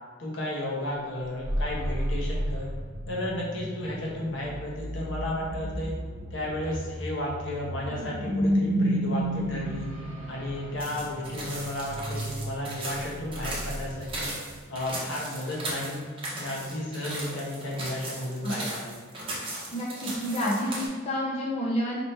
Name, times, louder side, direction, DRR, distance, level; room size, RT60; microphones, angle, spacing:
voice 1, 0.2-2.7 3.1-5.9 6.3-9.9 10.3-14.3 14.7-16.0 16.3-18.9, left 1 dB, 70° left, -4 dB, 1.0 m, -33 dB
sound 1, 1.2-14.7, equal, 65° right, 0.8 m, -32 dB
sound 2, 10.8-20.9, right 2 dB, 25° right, 0.8 m, -37 dB
voice 2, 19.7-22.0, equal, 35° left, -5 dB, 0.5 m, -29 dB
4.3 x 2.9 x 3.2 m, 1.5 s
head